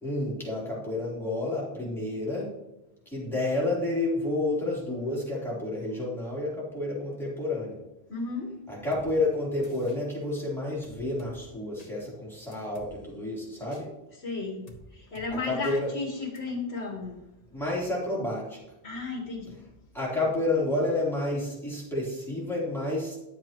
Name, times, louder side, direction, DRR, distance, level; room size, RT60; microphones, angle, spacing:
voice 1, 0.0-2.5 3.1-7.8 8.7-13.9 15.3-15.9 17.5-18.6 19.9-23.2, left 2 dB, ahead, -6 dB, 3.4 m, -30 dB
voice 2, 8.1-8.6 14.2-17.2 18.8-19.7, left 3 dB, 85° left, -1 dB, 1.7 m, -34 dB
sound 1, 8.9-9.1 9.6-10.0 10.8-11.3 11.8-11.9 12.5-12.9 13.7-13.8 14.7-14.8 15.2-15.3 15.6-15.8 16.4-16.5, equal, 40° left, 1.3 m, -49 dB
11.0 x 7.6 x 3.0 m, 0.94 s
omnidirectional pair, 1.1 m